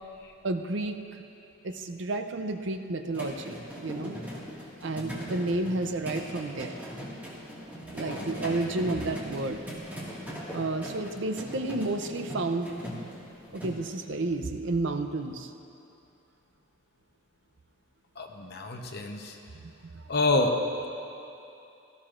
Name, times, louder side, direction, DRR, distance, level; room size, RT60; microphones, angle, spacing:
voice 1, 0.4-1.0 1.6-4.2 4.8-6.7 7.9-9.6 10.5-12.7 13.5-15.5 19.8-20.0, right 2 dB, 55° right, 6 dB, 0.6 m, -31 dB
sound 1, 3.1-13.7, equal, 10° right, 1.8 m, -39 dB
voice 2, 18.2-19.3 20.1-20.5, left 2 dB, 50° left, 2 dB, 0.9 m, -28 dB
17.5 x 13.5 x 2.5 m, 2.7 s
head